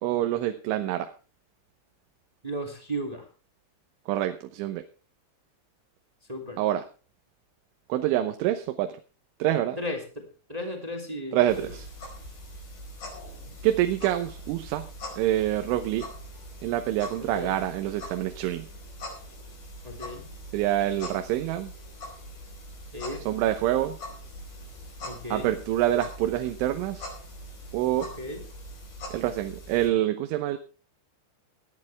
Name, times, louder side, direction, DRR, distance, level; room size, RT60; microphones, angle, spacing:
voice 1, 0.0-1.1 4.1-4.8 6.6-6.8 7.9-8.9 9.4-9.8 11.3-11.9 13.6-14.9 15.2-16.1 16.6-18.7 20.5-21.7 23.3-24.0 25.3-27.1 27.7-28.1 29.1-30.6, right 13 dB, 80° right, 8 dB, 3.4 m, -26 dB
voice 2, 2.4-3.2 6.3-6.6 9.8-10.2 10.5-11.7 17.2-17.6 19.8-20.3 22.9-23.2 25.0-25.5 27.9-28.4, equal, 15° right, 4 dB, 1.6 m, -35 dB
sound 1, 11.5-29.9, equal, 45° left, 6.3 m, -42 dB
19.0 x 12.0 x 3.4 m, 0.35 s
omnidirectional pair, 5.5 m